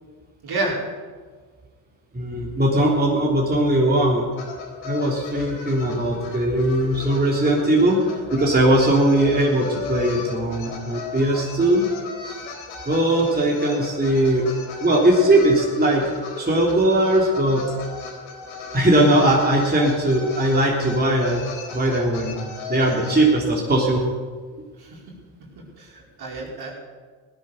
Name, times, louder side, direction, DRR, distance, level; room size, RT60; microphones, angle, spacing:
voice 1, 0.4-0.8 24.8-25.0 25.8-26.7, right 2 dB, 50° right, -2 dB, 4.7 m, -29 dB
voice 2, 2.1-4.2 4.8-8.0 8.3-11.8 12.8-14.4 14.8-16.0 16.4-17.6 18.7-21.4 21.7-24.0, right 1 dB, 20° right, -3 dB, 3.4 m, -19 dB
sound 1, 4.3-23.3, left 4 dB, 65° left, 3.9 m, -36 dB
17.0 x 10.5 x 6.6 m, 1.5 s
hypercardioid pair, 65°, 49 cm